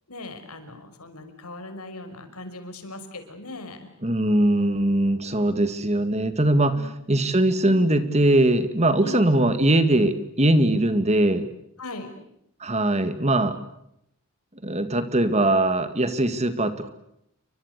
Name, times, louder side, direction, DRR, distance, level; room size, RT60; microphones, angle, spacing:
voice 1, 0.1-3.9 6.7-6.9 7.2-7.3 7.6-7.8 9.0-9.2 11.8-12.2, left 2 dB, 85° left, 8 dB, 5.7 m, -39 dB
voice 2, 4.0-6.8 7.1-11.5 12.6-13.6 14.6-16.9, right 1 dB, 30° right, 11 dB, 1.9 m, -21 dB
29.5 x 24.5 x 8.2 m, 0.77 s
head